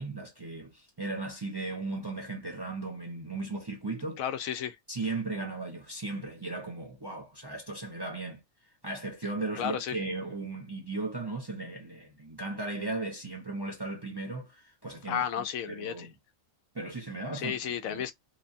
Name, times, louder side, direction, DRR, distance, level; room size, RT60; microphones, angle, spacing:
voice 1, 0.0-4.2 4.9-8.4 8.8-15.2 15.7-16.1 16.7-18.0, right 3 dB, 25° right, 0.6 m, -36 dB
voice 2, 4.2-4.8 9.6-10.0 15.1-16.1 17.3-18.1, left 9 dB, 90° left, 1.0 m, -33 dB
3.0 x 2.2 x 2.5 m
omnidirectional pair, 1.4 m